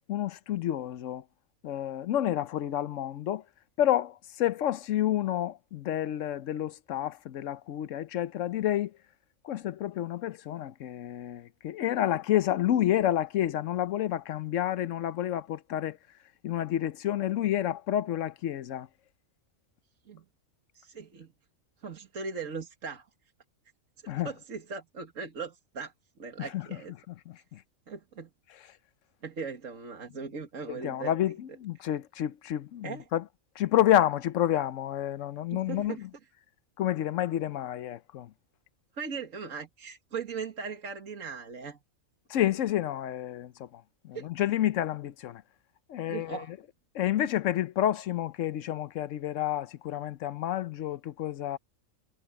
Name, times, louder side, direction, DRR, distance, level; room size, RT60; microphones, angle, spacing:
voice 1, 0.1-1.2 1.6-3.4 3.8-8.9 9.4-16.0 16.4-18.9 24.1-24.3 26.4-26.7 27.1-27.6 30.7-33.2 33.6-36.1 36.8-38.3 42.3-45.4 45.9-46.4 46.9-51.6, left 12 dB, 70° left, 1.0 m, -29 dB
voice 2, 20.7-21.3 21.8-23.1 24.0-26.9 27.9-28.3 29.2-31.1 32.8-33.0 35.5-36.0 38.9-41.8 44.1-44.3 46.1-46.5, right 5 dB, 75° right, 2.2 m, -39 dB
omnidirectional pair, 1.4 m